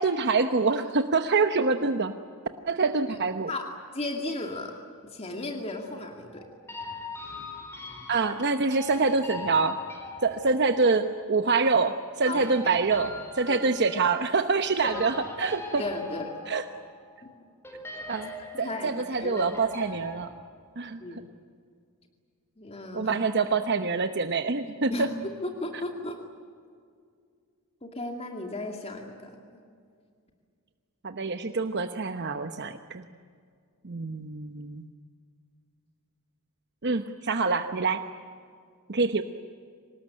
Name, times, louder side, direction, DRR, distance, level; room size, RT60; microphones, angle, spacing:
voice 1, 0.0-2.1 2.7-3.5 8.1-9.8 10.2-15.8 16.5-16.6 18.1-18.3 18.6-20.3 20.8-21.2 22.9-25.1 31.0-33.1 33.8-34.9 36.8-38.0 38.9-39.2, right 4 dB, 50° right, 8 dB, 1.0 m, -26 dB
voice 2, 3.9-4.7 5.0-6.4 12.3-12.4 13.5-13.6 13.9-14.0 14.8-15.0 15.8-16.3 17.2-17.3 18.4-19.5 21.0-21.2 22.6-23.1 24.9-25.1 25.4-26.2 27.8-29.3, left 2 dB, 30° left, 3 dB, 2.4 m, -35 dB
sound 1, 6.3-11.2 12.4-14.2 14.6-17.4 17.6-20.3, left 3 dB, 10° left, 4.0 m, -42 dB
25.5 x 19.5 x 10.0 m, 2.1 s
head